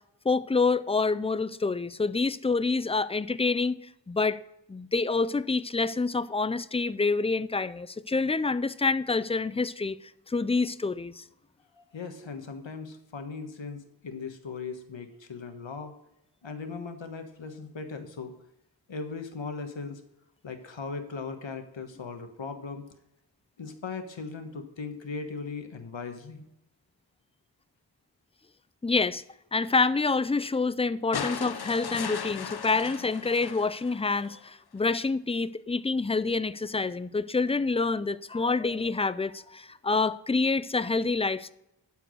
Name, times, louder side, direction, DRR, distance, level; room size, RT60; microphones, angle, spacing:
voice 1, 0.2-3.8 4.1-4.4 4.7-10.0 10.3-11.2 28.8-29.2 29.5-41.5, left 4 dB, 15° left, 0.3 m, -27 dB
voice 2, 11.7-15.9 16.4-18.3 18.9-20.0 20.4-22.8 23.6-26.4, left 4 dB, 80° left, 1.4 m, -38 dB
sound 1, 31.1-34.4 35.8-35.9, left 6 dB, 55° left, 0.8 m, -37 dB
12.0 x 4.7 x 6.3 m
wide cardioid pair, 70°, 45 cm